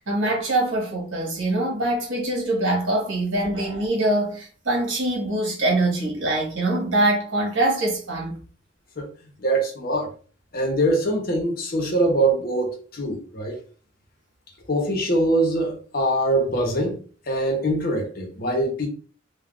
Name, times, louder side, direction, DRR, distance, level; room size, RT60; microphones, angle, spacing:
voice 1, 0.1-8.4, right 1 dB, 85° right, 1.3 m, -23 dB
voice 2, 9.4-10.1 10.5-13.6 14.7-18.9, right 1 dB, 50° left, 0.8 m, -23 dB
3.6 x 2.2 x 2.3 m
head